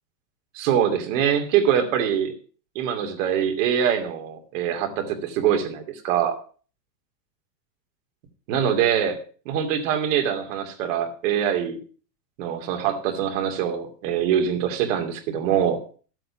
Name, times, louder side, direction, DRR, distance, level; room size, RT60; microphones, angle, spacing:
voice 1, 0.5-2.3 2.7-6.3 8.5-9.2 9.4-11.8 12.4-15.8, right 9 dB, 50° right, 5 dB, 2.8 m, -23 dB
12.5 x 7.8 x 5.7 m, 0.39 s
supercardioid pair, 160°, 49 cm